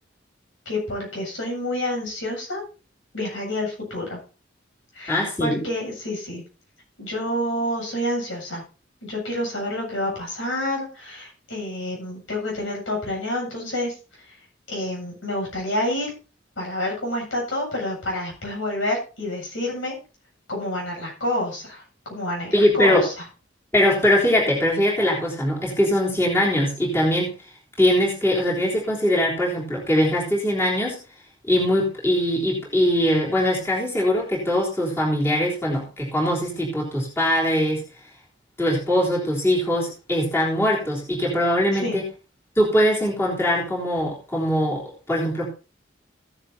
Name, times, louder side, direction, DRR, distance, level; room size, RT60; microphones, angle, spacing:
voice 1, 0.7-2.6 3.1-4.2 4.9-6.4 7.0-8.6 9.0-13.9 14.7-16.1 16.6-19.9 20.5-23.1 41.8-42.0, left 1 dB, 85° left, -1 dB, 8.0 m, -28 dB
voice 2, 5.1-5.7 22.5-23.1 23.7-27.3 27.8-31.0 31.5-37.8 38.6-42.1 42.6-45.5, equal, 10° left, -4 dB, 3.5 m, -21 dB
15.5 x 11.0 x 2.8 m, 0.33 s
head